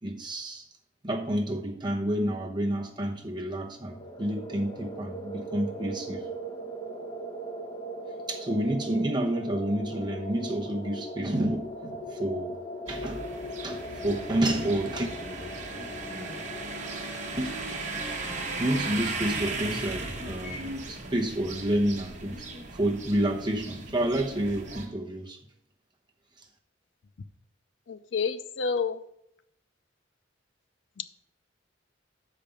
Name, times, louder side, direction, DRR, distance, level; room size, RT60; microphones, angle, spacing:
voice 1, 0.0-0.7 1.0-6.3 8.3-12.6 12.9-13.2 13.6-15.1 17.4-17.7 18.3-22.5 22.7-25.4 26.4-26.5, right 1 dB, 25° right, 0.9 m, -29 dB
sound 1, 3.8-20.7, right 1 dB, 25° left, 0.9 m, -40 dB
sound 2, 12.9-24.9, right 3 dB, 40° right, 1.3 m, -37 dB
voice 2, 27.9-29.0 31.0-31.1, left 5 dB, 70° left, 0.5 m, -29 dB
6.6 x 5.1 x 6.9 m
head